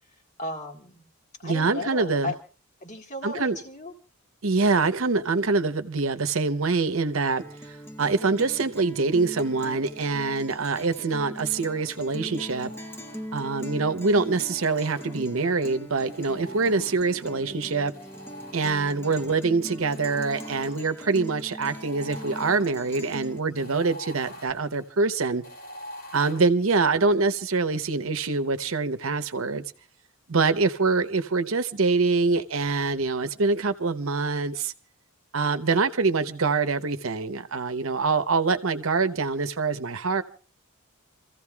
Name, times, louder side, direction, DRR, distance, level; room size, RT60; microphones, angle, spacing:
voice 1, 0.4-1.1 1.4-2.4 2.8-3.9 23.5-23.8 30.3-30.6, left 1 dB, 35° left, 1.7 m, -36 dB
voice 2, 1.4-2.3 3.2-3.6 4.4-12.7 13.3-17.9 18.5-25.4 26.1-29.6 30.3-34.7 35.3-40.2, right 4 dB, 65° right, 0.8 m, -25 dB
Guitar, 7.4-23.4, equal, 10° left, 0.7 m, -41 dB
sound 1, 12.3-13.6 14.2-15.5 16.1-17.4 17.9-19.3 19.8-26.4, left 1 dB, 65° left, 3.4 m, -46 dB
28.5 x 15.0 x 2.3 m
head